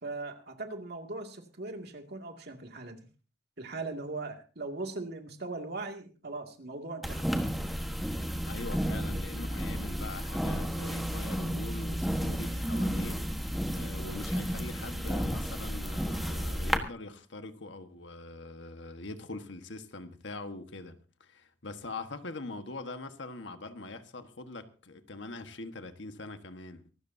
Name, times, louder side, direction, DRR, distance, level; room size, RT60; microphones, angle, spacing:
voice 1, 0.0-3.0 3.6-7.3, right 3 dB, 60° right, 2.3 m, -39 dB
sound 1, 7.0-16.8, equal, ahead, 1.3 m, -32 dB
voice 2, 8.5-13.2 13.7-26.8, left 2 dB, 70° left, 1.4 m, -43 dB
25.0 x 13.0 x 2.7 m
head